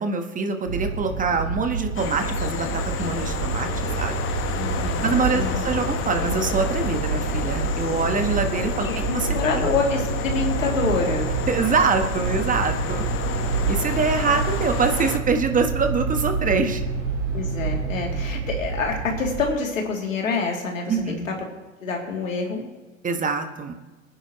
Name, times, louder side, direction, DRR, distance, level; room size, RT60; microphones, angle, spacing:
voice 1, 0.0-4.2 5.0-9.7 11.5-13.0 13.7-16.8 20.9-21.3 23.0-23.7, right 4 dB, 20° right, 6 dB, 1.4 m, -24 dB
sound 1, 0.7-19.4, right 5 dB, 60° right, 2.8 m, -28 dB
sound 2, 1.9-15.2, left 7 dB, 35° left, 1.3 m, -30 dB
voice 2, 4.5-5.6 9.3-11.3 17.3-21.3 21.8-22.6, left 4 dB, 80° left, 0 dB, 3.0 m, -26 dB
25.0 x 10.0 x 3.1 m, 1.2 s
figure-of-eight pair, 90°, 39 cm